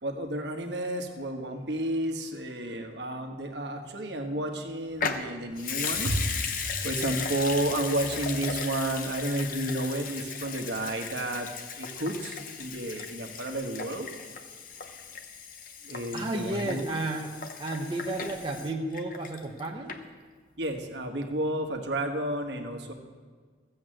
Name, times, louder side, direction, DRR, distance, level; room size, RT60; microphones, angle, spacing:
voice 1, 0.0-11.5 11.7-14.1 15.8-16.9 20.6-22.9, right 1 dB, 65° right, 4 dB, 1.4 m, -31 dB
Water tap faucet / Sink (filling or washing) / Liquid, 5.0-19.6 19.9-20.0, left 6 dB, 45° left, 0.9 m, -36 dB
voice 2, 16.1-20.0, right 2 dB, 25° right, 0 dB, 0.9 m, -33 dB
14.5 x 7.9 x 7.7 m, 1.5 s
head